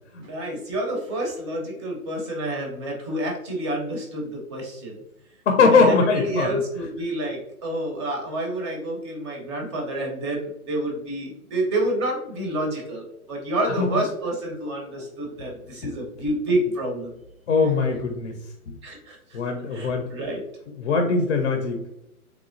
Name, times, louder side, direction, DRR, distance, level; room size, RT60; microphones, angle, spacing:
voice 1, 0.2-5.0 5.7-17.1 18.8-19.4 19.7-20.4, right 1 dB, 20° right, 0 dB, 0.6 m, -28 dB
voice 2, 5.5-6.5 13.8-13.9 15.8-16.1 17.5-18.4 18.7-18.8 19.3-20.1 20.8-21.9, left 4 dB, 50° left, 4 dB, 0.6 m, -21 dB
3.6 x 2.9 x 2.5 m, 0.84 s
hypercardioid pair, 135°, 45 cm